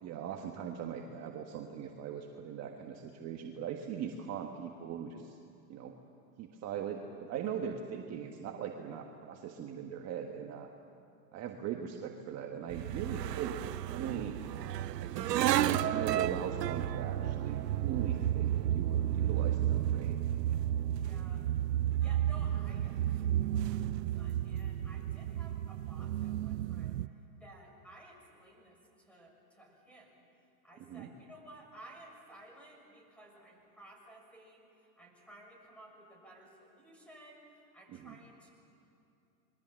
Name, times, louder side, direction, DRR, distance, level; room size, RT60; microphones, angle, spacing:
voice 1, 0.0-5.4 5.7-5.9 6.4-10.7 11.3-14.4 15.0-20.2 30.9-31.1 37.9-38.2, right 8 dB, 30° right, 2 dB, 1.6 m, -40 dB
sound 1, 12.7-27.1, right 12 dB, 80° right, 0.9 m, -32 dB
voice 2, 20.9-21.4 22.0-27.0 27.4-30.3 30.6-38.5, right 1 dB, ahead, 0 dB, 6.2 m, -56 dB
27.0 x 22.5 x 7.7 m, 2.7 s
hypercardioid pair, 120°, 48 cm